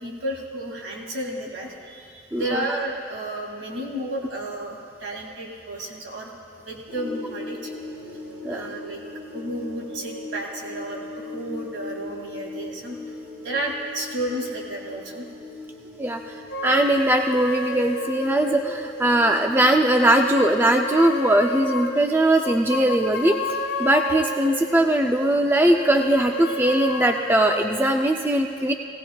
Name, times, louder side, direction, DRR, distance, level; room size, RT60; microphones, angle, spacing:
voice 1, 0.0-7.7 8.4-9.0 9.3-13.1 13.4-15.3, right 1 dB, 75° right, -1 dB, 2.1 m, -32 dB
voice 2, 2.3-2.6 8.4-8.6 16.0-16.4 16.6-28.7, right 1 dB, 10° right, 3 dB, 0.3 m, -20 dB
sound 1, 6.9-23.4, left 2 dB, 30° right, 1.2 m, -39 dB
sound 2, 16.5-19.3 19.8-25.0 25.6-28.1, left 1 dB, 60° left, 0.5 m, -31 dB
18.0 x 17.5 x 2.2 m, 2.3 s
head